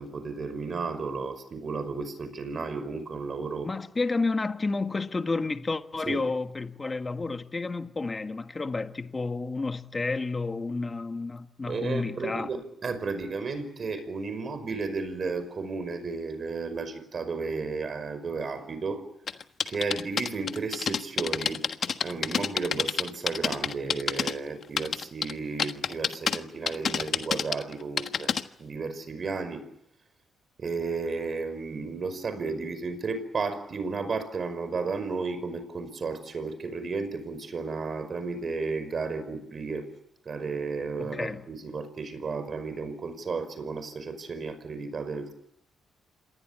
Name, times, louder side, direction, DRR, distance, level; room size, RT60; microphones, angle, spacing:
voice 1, 0.0-3.7 6.1-6.3 11.7-19.0 19.7-21.6 22.0-29.7 30.6-39.9 40.3-45.3, right 4 dB, 45° right, 5.4 m, -33 dB
voice 2, 3.6-12.5 41.0-41.4, left 3 dB, 25° left, 1.6 m, -31 dB
sound 1, 19.3-24.3 24.6-25.3 25.6-26.4 26.7-28.4, left 7 dB, 55° left, 1.4 m, -28 dB
27.0 x 19.5 x 8.8 m
cardioid pair, 90°, 0 cm